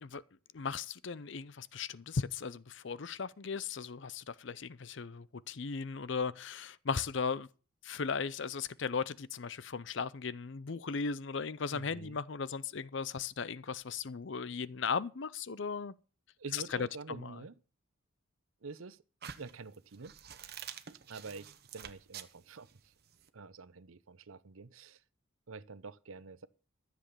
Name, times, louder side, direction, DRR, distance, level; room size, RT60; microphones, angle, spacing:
voice 1, 0.5-7.5 7.8-15.9 16.5-17.3, left 5 dB, 60° left, 0.6 m, -37 dB
voice 2, 11.7-12.2 16.4-17.6 18.6-19.0 19.4-20.1 21.1-22.9 23.3-25.0 25.5-26.5, right 4 dB, 80° right, 0.8 m, -47 dB
sound 1, 19.2-23.3, right 8 dB, 50° right, 1.0 m, -48 dB
13.5 x 7.6 x 6.8 m
head